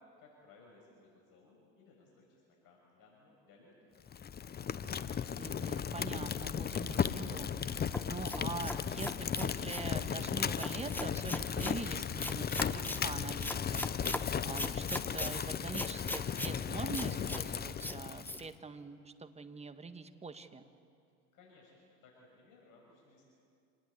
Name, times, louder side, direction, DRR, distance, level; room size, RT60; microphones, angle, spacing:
voice 1, 0.0-4.6 21.3-23.3, left 3 dB, 55° left, -2 dB, 6.4 m, -62 dB
Fire, 4.1-18.5, left 7 dB, 25° left, 0.9 m, -36 dB
voice 2, 5.4-7.5 8.1-20.6, right 4 dB, 15° right, 9 dB, 1.6 m, -44 dB
sound 1, 7.9-9.9 10.6-11.8 12.2-13.0 13.4-14.2 14.6-15.3 15.7-16.5 16.9-17.4 17.8-18.0 18.2-18.4, left 1 dB, 5° left, 1.2 m, -39 dB
26.5 x 19.0 x 8.4 m, 2.4 s
hypercardioid pair, 80°, 40 cm